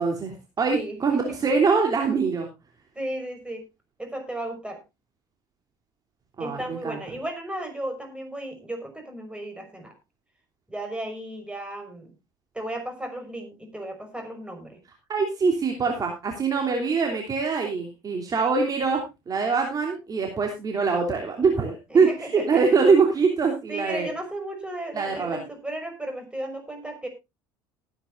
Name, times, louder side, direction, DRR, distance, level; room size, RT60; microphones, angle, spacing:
voice 1, 0.0-2.5 6.4-7.0 15.1-24.1 24.9-25.4, right 5 dB, 35° right, 2 dB, 3.3 m, -23 dB
voice 2, 0.7-1.2 2.9-3.7 4.0-4.8 6.4-9.9 10.7-12.1 12.5-14.8 21.9-22.8 23.7-27.1, right 1 dB, 10° right, 5 dB, 5.7 m, -35 dB
19.5 x 9.7 x 2.6 m, 0.24 s
hypercardioid pair, 75°, 10 cm